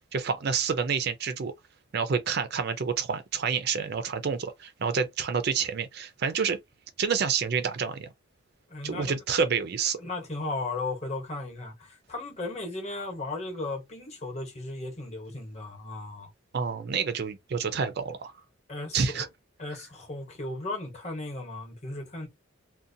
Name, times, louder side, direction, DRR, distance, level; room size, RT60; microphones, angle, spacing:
voice 1, 0.1-1.5 1.9-6.6 7.0-8.1 8.8-10.0 16.5-18.3 18.9-19.3, right 6 dB, 50° right, 0.4 m, -28 dB
voice 2, 8.7-9.2 10.0-16.3 18.7-19.3 19.6-22.3, left 2 dB, 30° left, 0.9 m, -36 dB
2.5 x 2.1 x 2.6 m
head